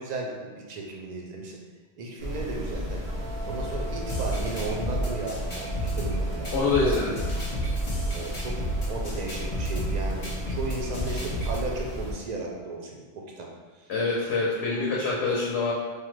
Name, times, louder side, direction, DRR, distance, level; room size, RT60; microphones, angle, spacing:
voice 1, 0.0-1.6 2.0-3.0 3.4-7.0 8.1-8.6 8.9-13.5 13.8-13.9, right 2 dB, 55° right, -1 dB, 0.5 m, -35 dB
sound 1, 2.2-12.1, equal, 85° right, 1.0 m, -34 dB
sound 2, 3.1-12.7, right 2 dB, 20° left, 0.4 m, -44 dB
sound 3, 4.1-11.6, right 1 dB, 45° left, 0.8 m, -31 dB
voice 2, 6.5-7.1 13.9-15.7, left 3 dB, 90° left, -4 dB, 0.8 m, -25 dB
3.1 x 2.0 x 3.1 m, 1.3 s
omnidirectional pair, 1.1 m